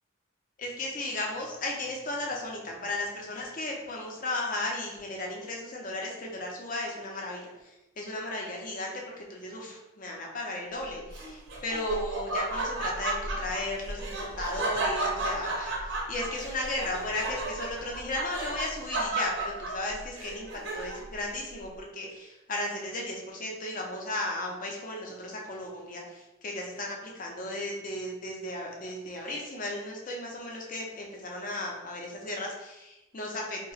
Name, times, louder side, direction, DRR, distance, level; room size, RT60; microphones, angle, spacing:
voice 1, 0.6-20.5 20.7-33.7, left 2 dB, 40° left, -1 dB, 0.6 m, -35 dB
Laughter, 11.1-21.1, right 2 dB, 65° right, 0.6 m, -33 dB
2.8 x 2.2 x 4.0 m, 0.98 s
head